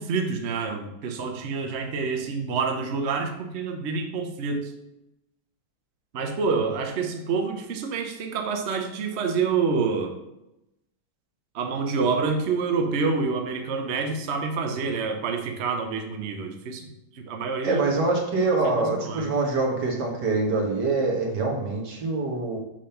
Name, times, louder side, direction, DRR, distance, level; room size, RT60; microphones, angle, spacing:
voice 1, 0.0-4.7 6.1-10.1 11.5-16.9 17.1-17.8 18.6-19.3, right 4 dB, 50° right, 4 dB, 0.8 m, -27 dB
voice 2, 17.6-22.6, right 3 dB, 70° right, -2 dB, 2.2 m, -25 dB
7.6 x 3.5 x 5.7 m, 0.89 s
omnidirectional pair, 1.9 m